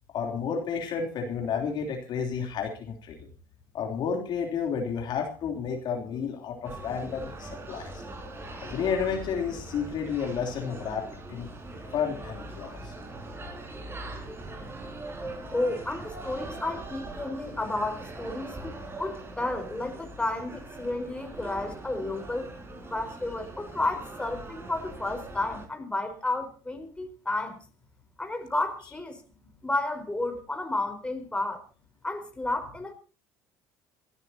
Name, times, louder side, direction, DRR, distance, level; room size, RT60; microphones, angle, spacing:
voice 1, 0.1-3.3 3.7-8.0 8.6-11.5 11.9-12.9, left 6 dB, 55° left, 2 dB, 3.2 m, -31 dB
sound 1, 6.6-25.7, right 2 dB, 25° right, 5.4 m, -41 dB
voice 2, 15.5-22.5 22.9-27.6 28.2-31.6 32.0-32.9, left 2 dB, 10° left, 5 dB, 4.5 m, -32 dB
27.5 x 12.5 x 2.8 m, 0.36 s
hypercardioid pair, 75°, 9 cm